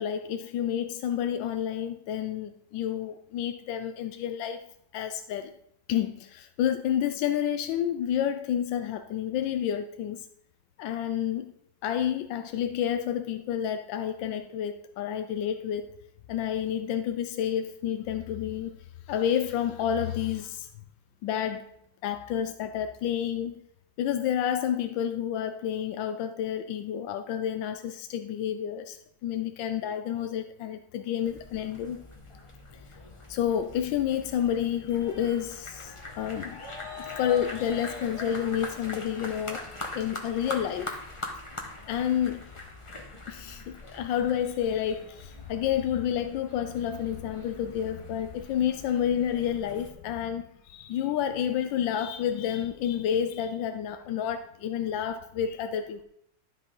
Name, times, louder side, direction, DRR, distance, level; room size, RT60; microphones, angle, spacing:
voice 1, 0.0-4.6 4.9-5.5 5.9-10.3 10.8-11.5 11.8-15.9 16.3-18.8 19.1-20.7 21.2-21.7 22.0-23.6 24.0-32.0 33.3-36.6 36.9-39.7 39.9-40.9 41.9-42.4 43.3-56.0, left 9 dB, 85° left, 1.4 m, -30 dB
sound 1, 31.2-49.9, left 2 dB, 20° left, 1.0 m, -42 dB
12.5 x 6.0 x 3.8 m
omnidirectional pair, 2.0 m